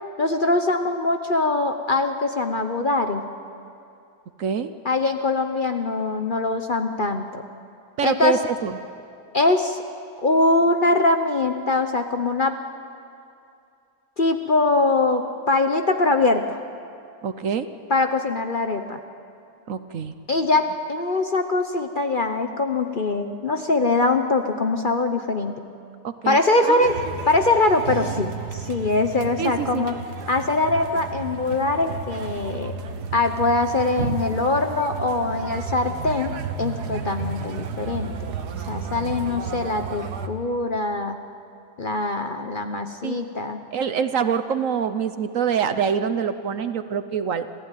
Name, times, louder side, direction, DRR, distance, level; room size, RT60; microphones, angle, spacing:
voice 1, 0.2-3.2 4.8-7.4 8.0-8.4 9.3-9.8 10.2-12.6 14.2-16.6 17.9-19.0 20.3-25.5 26.3-27.0 27.3-29.9 30.3-32.7 33.1-38.1 38.7-41.2 41.8-43.6, left 2 dB, 40° left, 6 dB, 0.9 m, -22 dB
voice 2, 4.4-4.7 8.0-8.8 17.2-17.7 19.7-20.2 26.0-26.8 29.4-29.9 34.0-34.2 43.0-43.2 43.7-47.7, right 7 dB, 60° right, 11 dB, 1.1 m, -25 dB
sound 1, 26.8-40.3, right 5 dB, 85° right, 1.7 m, -33 dB
26.5 x 15.5 x 9.2 m, 2.6 s
omnidirectional pair, 1.7 m